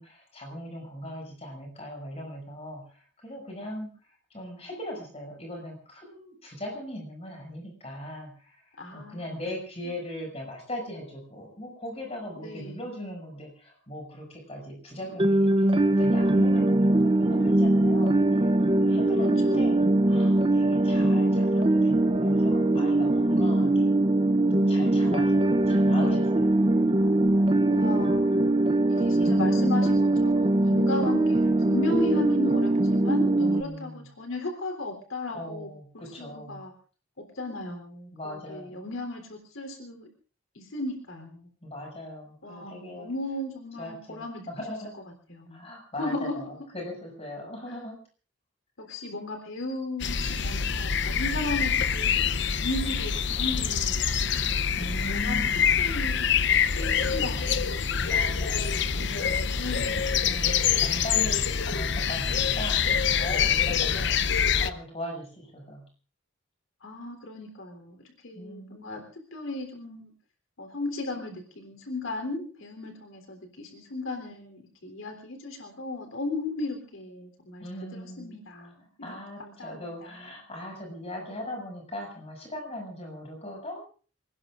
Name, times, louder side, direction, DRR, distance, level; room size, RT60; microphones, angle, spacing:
voice 1, 0.0-3.9 4.3-8.6 8.9-18.2 18.8-23.9 24.5-26.6 29.1-29.7 33.4-34.1 35.3-36.6 38.1-38.8 41.6-43.1 43.8-44.9 45.5-48.0 54.8-55.9 58.0-59.5 60.2-65.8 68.3-68.8 77.6-78.4 79.0-83.8, left 1 dB, 30° left, 1 dB, 6.8 m, -39 dB
voice 2, 8.8-9.4 12.4-12.9 19.1-19.9 27.7-28.6 28.9-36.7 37.2-40.1 40.5-41.5 42.4-44.4 45.0-45.7 46.0-46.4 47.7-47.8 48.8-54.5 55.1-55.5 55.8-58.1 58.9-60.1 66.8-70.1 70.6-77.6 77.9-80.2, left 2 dB, 85° left, 5 dB, 3.6 m, -36 dB
sound 1, 15.2-33.6, right 2 dB, 25° right, 0.7 m, -22 dB
sound 2, 50.0-64.7, left 7 dB, 60° left, 0.7 m, -25 dB
28.0 x 19.5 x 2.5 m, 0.40 s
head